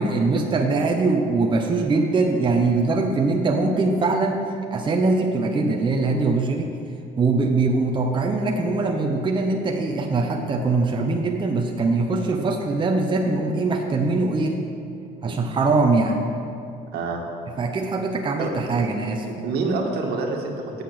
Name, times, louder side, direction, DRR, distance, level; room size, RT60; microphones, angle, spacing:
voice 1, 0.0-4.4 4.7-6.7 7.2-14.6 15.2-16.2 17.6-19.3, right 3 dB, 30° right, 2 dB, 0.8 m, -22 dB
voice 2, 16.9-17.2 18.4-18.9 19.2-20.8, right 3 dB, 70° right, 1 dB, 1.7 m, -27 dB
8.3 x 6.8 x 7.7 m, 2.5 s
cardioid pair, 110°, 17 cm